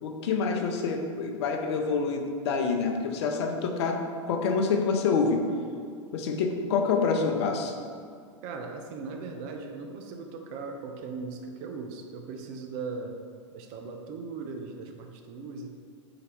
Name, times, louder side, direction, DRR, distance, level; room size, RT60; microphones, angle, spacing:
voice 1, 0.0-5.4 6.1-7.7, left 5 dB, 55° left, 4 dB, 0.6 m, -27 dB
voice 2, 8.4-13.2 13.5-15.7, right 4 dB, 45° right, 4 dB, 0.5 m, -38 dB
4.0 x 3.9 x 3.4 m, 2.2 s
hypercardioid pair, 100°, 16 cm